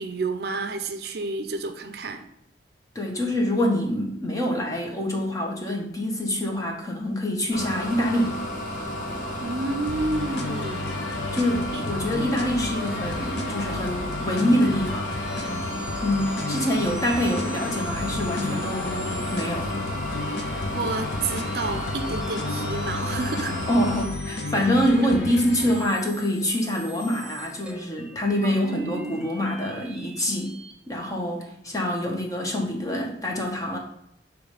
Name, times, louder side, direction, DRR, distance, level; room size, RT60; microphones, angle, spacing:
voice 1, 0.0-2.3 9.4-10.9 11.7-11.8 12.1-12.4 20.7-23.6 28.4-29.2, right 3 dB, 55° right, 7 dB, 0.5 m, -30 dB
voice 2, 2.9-8.4 11.3-15.1 16.0-19.7 23.7-30.5 30.9-33.8, equal, 20° left, 0 dB, 1.0 m, -25 dB
sound 1, 7.5-24.0, left 1 dB, 45° left, 1.2 m, -32 dB
sound 2, 9.9-25.9, left 3 dB, 70° left, 0.7 m, -33 dB
sound 3, 12.8-30.7, right 2 dB, 5° right, 0.5 m, -44 dB
6.9 x 3.2 x 4.9 m, 0.77 s
head